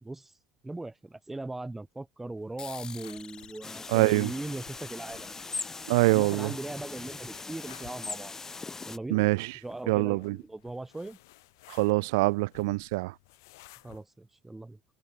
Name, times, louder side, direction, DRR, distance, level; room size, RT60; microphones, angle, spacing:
voice 1, 0.0-0.3 0.6-5.3 6.1-8.3 8.9-9.3 9.6-11.2 13.8-14.8, right 2 dB, 10° right, 1.5 m, -39 dB
sound 1, 2.4-14.0, left 21 dB, 75° left, 2.9 m, -57 dB
sound 2, 2.6-7.5, left 7 dB, 40° left, 1.8 m, -50 dB
sound 3, 3.6-9.0, left 4 dB, 20° left, 1.4 m, -40 dB
voice 2, 3.9-4.3 5.9-6.5 9.1-9.5 9.9-10.4 11.7-13.1, right 24 dB, 75° right, 0.4 m, -24 dB
hypercardioid pair, 65°, 2 cm